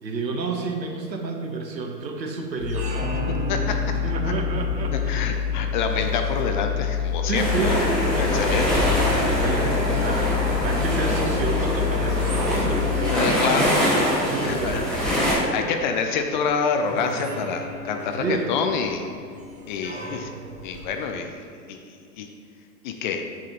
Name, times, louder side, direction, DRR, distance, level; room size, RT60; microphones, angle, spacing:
voice 1, 0.0-2.9 3.2-3.3 3.7-5.2 7.3-8.7 9.3-13.8 14.2-14.9 18.2-18.5, right 3 dB, 85° right, 3 dB, 1.2 m, -30 dB
sound 1, 2.5-21.1, right 2 dB, 15° right, 0.8 m, -38 dB
sound 2, 2.6-13.1, left 8 dB, 60° left, 1.7 m, -27 dB
voice 2, 4.9-7.8 8.2-8.7 12.8-13.7 14.4-14.8 15.3-19.0 19.7-20.3 20.6-21.3 21.7-22.3 22.8-23.2, left 5 dB, 30° left, 5 dB, 0.4 m, -27 dB
sound 3, 7.3-15.3, left 1 dB, ahead, 1.6 m, -24 dB
7.6 x 7.2 x 2.9 m, 2.5 s
figure-of-eight pair, 105°, 50 cm